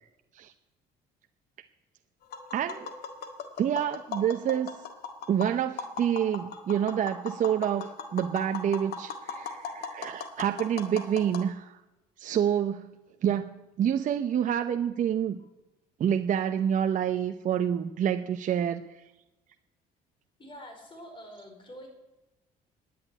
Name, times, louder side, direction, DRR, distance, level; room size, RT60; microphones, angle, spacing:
Tap, 2.2-11.4, left 5 dB, 70° left, 1.8 m, -39 dB
voice 1, 2.5-2.9 3.6-4.7 5.3-11.8 12.2-15.4 16.0-18.8, right 9 dB, 50° right, 7 dB, 0.8 m, -28 dB
voice 2, 20.4-21.9, equal, 30° left, 3 dB, 4.7 m, -46 dB
10.5 x 10.0 x 9.8 m, 1.0 s
cardioid pair, 110°, 17 cm